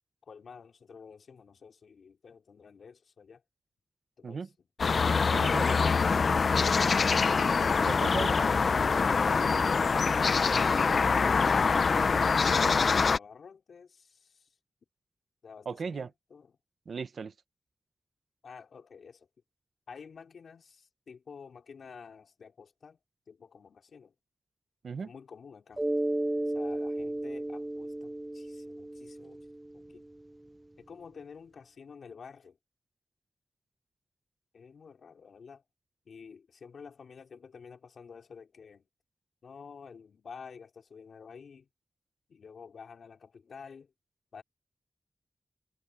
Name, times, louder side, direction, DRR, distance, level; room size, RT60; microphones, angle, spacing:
voice 1, 0.2-3.4 4.2-4.7 5.3-6.2 9.3-14.5 15.4-16.6 18.4-19.3 19.9-23.0 23.3-24.1 25.0-25.8 26.5-29.5 29.7-30.0 30.8-32.6 34.5-35.6 36.1-38.9 39.4-41.7 42.3-43.9 44.3-44.4, left 6 dB, 85° left, 3.9 m, -49 dB
sound 1, 4.8-13.2, left 5 dB, 55° left, 0.5 m, -25 dB
voice 2, 5.3-5.9 7.8-8.5 15.7-16.1 16.9-17.3 24.8-25.1, right 5 dB, 70° right, 1.0 m, -36 dB
Mallet percussion, 25.8-30.2, right 1 dB, 15° right, 0.3 m, -34 dB
wide cardioid pair, 170°, 0 cm